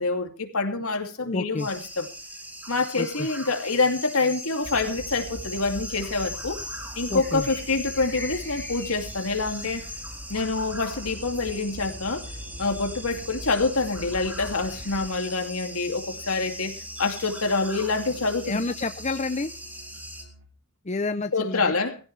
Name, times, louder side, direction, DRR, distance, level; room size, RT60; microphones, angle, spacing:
voice 1, 0.0-2.1 2.7-6.6 7.0-9.9 10.3-12.2 12.6-18.6 21.3-22.0, left 3 dB, 70° left, 2.7 m, -26 dB
voice 2, 1.2-1.7 3.0-3.3 7.1-7.5 18.5-19.5 20.8-21.7, left 3 dB, 30° left, 0.7 m, -29 dB
sound 1, 1.6-20.2, equal, 10° right, 2.8 m, -40 dB
sound 2, 4.6-15.1, left 1 dB, 10° left, 3.9 m, -42 dB
Musical instrument, 10.7-20.6, equal, 75° right, 3.2 m, -49 dB
18.5 x 16.0 x 3.3 m
head